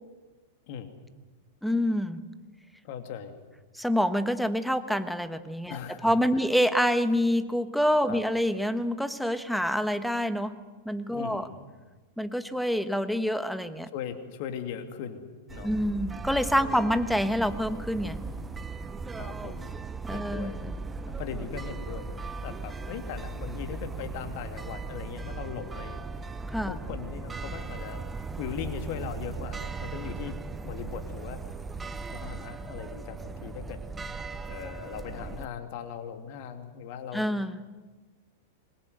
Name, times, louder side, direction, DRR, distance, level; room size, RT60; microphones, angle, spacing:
voice 1, 1.6-2.2 3.7-10.6 10.8-11.5 12.2-13.9 15.6-18.2 20.1-20.8 26.5-26.7 37.1-37.6, equal, ahead, 12 dB, 1.5 m, -27 dB
voice 2, 2.8-3.4 5.7-6.4 8.1-8.2 11.1-11.6 13.9-15.7 16.6-17.0 19.1-19.7 20.1-20.6 21.0-26.3 26.7-28.0 28.4-30.4 30.6-31.4 32.1-33.8 34.5-37.3, left 8 dB, 50° left, 7 dB, 2.8 m, -39 dB
sound 1, 15.5-35.5, right 4 dB, 15° right, 1.2 m, -38 dB
26.0 x 21.5 x 8.0 m, 1.3 s
figure-of-eight pair, 95°, 0 cm